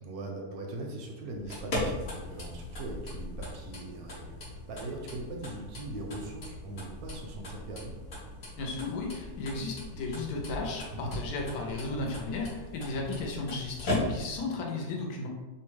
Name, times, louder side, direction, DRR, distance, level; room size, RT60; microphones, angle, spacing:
voice 1, 0.0-8.0 10.9-11.2, right 2 dB, 75° right, 1 dB, 1.0 m, -40 dB
sound 1, 1.3-14.5, left 1 dB, 50° left, 0.9 m, -39 dB
voice 2, 8.6-15.3, left 3 dB, 75° left, 0 dB, 1.1 m, -34 dB
2.9 x 2.2 x 3.1 m, 1.2 s
omnidirectional pair, 1.7 m